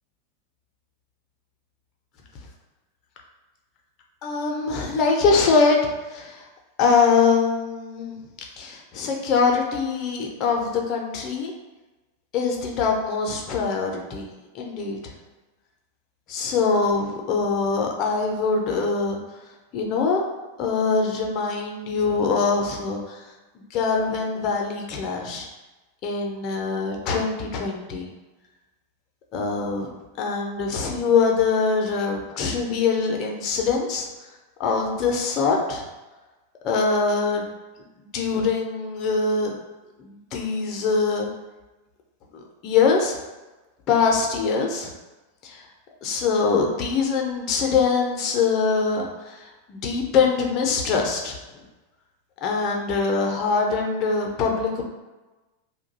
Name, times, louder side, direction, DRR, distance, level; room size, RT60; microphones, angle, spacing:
voice 1, 4.2-6.5 6.8-8.2 8.6-11.5 12.3-15.1 16.3-19.2 19.7-20.2 20.6-23.2 23.5-25.5 26.0-28.1 29.3-34.1 34.6-35.8 36.6-37.5 38.1-39.6 40.0-41.3 42.3-43.2 43.9-44.9 45.4-45.6 46.0-51.4 52.4-54.8, left 4 dB, 35° left, 0 dB, 0.6 m, -23 dB
2.6 x 2.2 x 3.9 m, 1.1 s
figure-of-eight pair, 90°, 0 cm